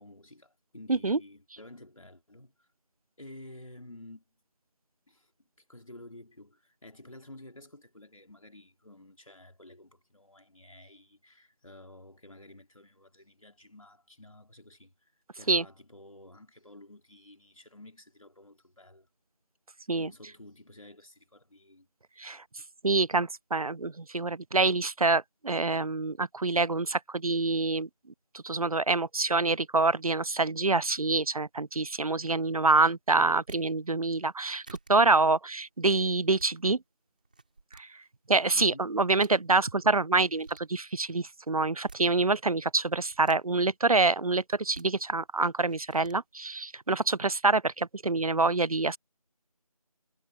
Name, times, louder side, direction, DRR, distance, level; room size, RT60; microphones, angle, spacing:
voice 1, 0.0-2.7 3.2-4.2 5.1-5.3 5.7-19.1 20.0-21.9 38.5-39.0, left 1 dB, 60° left, 4.0 m, -51 dB
voice 2, 22.8-27.9 28.4-34.6 34.9-36.8 37.8-37.9 38.3-49.0, right 3 dB, 70° right, 0.6 m, -26 dB
sound 1, 33.3-33.6 34.3-34.4 34.7-34.9 36.1-36.5 37.3-37.8 38.9-39.0 39.2-39.3 40.2-40.6 41.6-42.0 42.9-43.4 44.5-44.9 45.7-46.2, right 3 dB, 15° right, 3.4 m, -50 dB
figure-of-eight pair, 175°, 19 cm